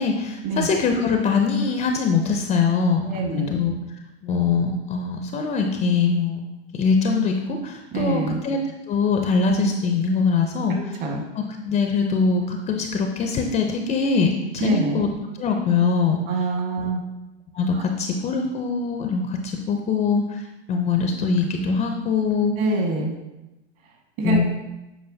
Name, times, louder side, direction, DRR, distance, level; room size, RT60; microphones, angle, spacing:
voice 1, 0.0-3.8 4.2-6.4 6.7-8.6 8.9-11.0 11.4-15.1 15.4-16.2 17.5-20.4 20.7-22.5 24.2-24.4, left 5 dB, 20° left, 4 dB, 0.5 m, -22 dB
voice 2, 3.0-3.6 7.9-8.4 10.7-11.2 14.6-15.0 16.3-17.0 17.7-17.8 22.6-23.1 24.2-24.4, right 3 dB, 45° right, 1 dB, 1.6 m, -25 dB
7.9 x 4.8 x 2.7 m, 0.99 s
hypercardioid pair, 110°, 33 cm